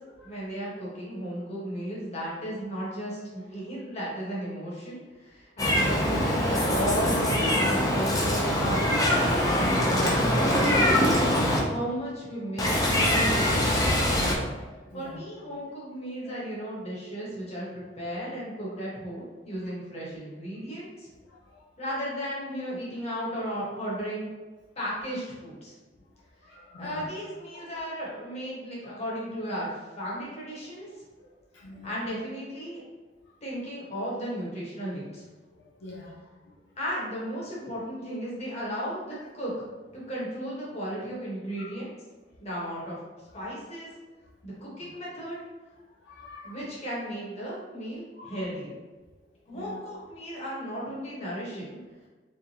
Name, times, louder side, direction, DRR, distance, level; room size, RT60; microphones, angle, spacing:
voice 1, 0.2-11.1 11.7-12.7 13.1-14.0 14.9-21.1 21.8-24.3 24.7-25.8 26.8-30.9 31.8-32.8 33.4-35.2 36.8-39.5 39.9-41.9 42.4-43.0 43.3-43.9 44.4-45.4 46.4-48.7 49.5-51.8, equal, 35° left, -6 dB, 1.3 m, -35 dB
Meow, 5.6-11.6 12.6-14.3, left 1 dB, 20° left, 0.6 m, -23 dB
voice 2, 14.1-15.2 16.2-16.3 21.3-21.7 26.4-27.1 27.5-27.7 28.8-28.9 31.5-31.9 35.8-36.5 41.6-41.7 44.8-44.9 46.0-46.6 48.2-48.4 49.5-49.8, left 2 dB, 85° left, -3 dB, 0.6 m, -46 dB
3.7 x 3.5 x 2.8 m, 1.3 s
head